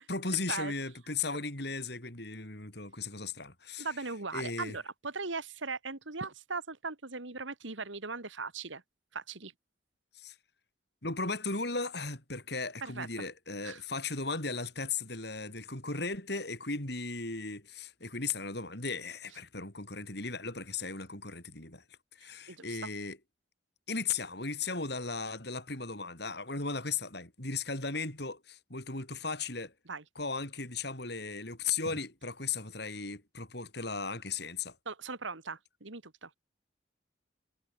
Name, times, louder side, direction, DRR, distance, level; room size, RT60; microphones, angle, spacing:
voice 1, 0.1-3.9 4.3-4.8 10.1-10.4 11.0-21.8 22.1-23.2 23.9-29.7 30.2-34.8, left 4 dB, 55° left, 5.8 m, -36 dB
voice 2, 3.8-8.8 9.1-9.5 12.8-13.3 13.6-13.8 22.2-22.8 29.9-30.0 34.9-36.3, right 4 dB, 80° right, 2.2 m, -39 dB
head